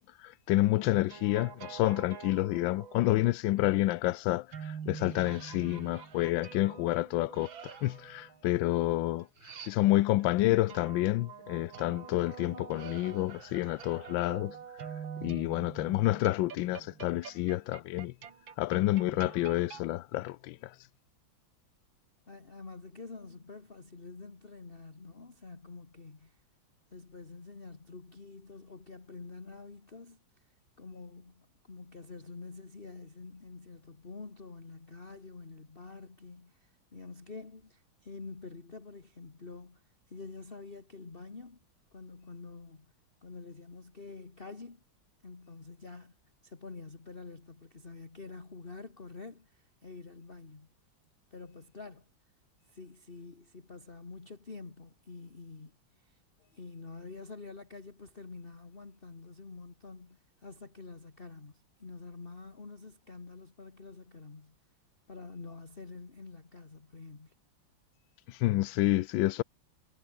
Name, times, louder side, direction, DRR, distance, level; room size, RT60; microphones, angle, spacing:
voice 1, 0.2-9.3 9.6-14.5 15.2-18.1 18.6-20.7 68.3-69.4, left 16 dB, 80° left, 1.3 m, -29 dB
sound 1, 0.7-3.3 4.5-10.2 10.7-19.9, right 7 dB, 75° right, 2.6 m, -46 dB
voice 2, 22.3-26.4 26.9-41.6 41.9-42.9 43.2-44.8 45.2-46.2 46.4-50.7 51.3-52.1 52.7-56.2 56.5-64.6 65.1-67.3, left 3 dB, 30° left, 2.2 m, -47 dB
omnidirectional pair, 2.1 m